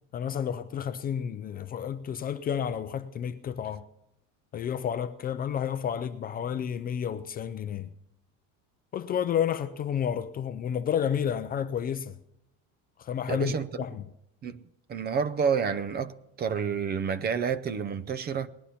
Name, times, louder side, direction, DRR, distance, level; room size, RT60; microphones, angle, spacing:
voice 1, 0.1-3.8 4.5-7.9 8.9-12.2 13.0-14.0, left 8 dB, 25° left, 0.4 m, -31 dB
voice 2, 13.3-13.7 14.4-14.6 14.9-18.5, right 6 dB, 30° right, 0.5 m, -29 dB
19.5 x 11.5 x 4.2 m
cardioid pair, 170°, 36 cm